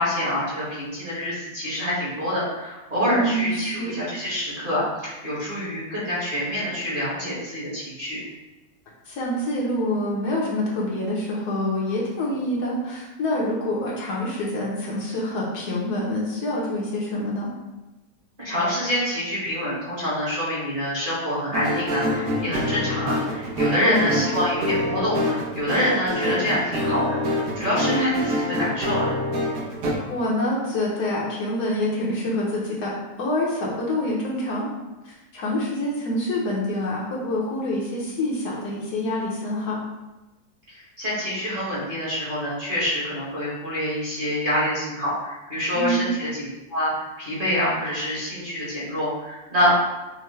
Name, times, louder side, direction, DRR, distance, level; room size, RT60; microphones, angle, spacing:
voice 1, 0.0-8.2 18.4-29.1 40.7-49.8, left 1 dB, 35° right, -8 dB, 1.2 m, -26 dB
voice 2, 3.1-4.0 9.1-17.5 23.8-24.1 27.9-28.3 30.1-32.9 33.2-34.7 35.0-39.8 45.7-46.2, left 1 dB, 65° left, -4 dB, 1.3 m, -26 dB
sound 1, 21.5-29.9, left 1 dB, 65° right, 1.3 m, -26 dB
5.5 x 2.1 x 3.1 m, 1.1 s
omnidirectional pair, 1.9 m